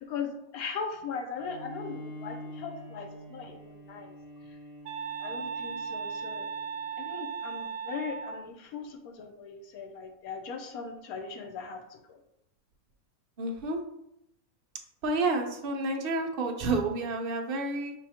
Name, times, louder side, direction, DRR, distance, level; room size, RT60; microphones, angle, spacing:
voice 1, 0.0-4.2 4.5-4.6 5.2-6.5 7.0-12.2, left 5 dB, 80° left, 4 dB, 1.2 m, -39 dB
Bowed string instrument, 1.4-7.0, equal, 5° right, 1.0 m, -46 dB
sound 1, 4.9-8.5, right 6 dB, 75° right, 1.0 m, -37 dB
voice 2, 13.4-13.8 15.0-17.9, right 2 dB, 50° right, 2 dB, 0.7 m, -30 dB
6.2 x 3.0 x 2.8 m, 0.78 s
omnidirectional pair, 1.6 m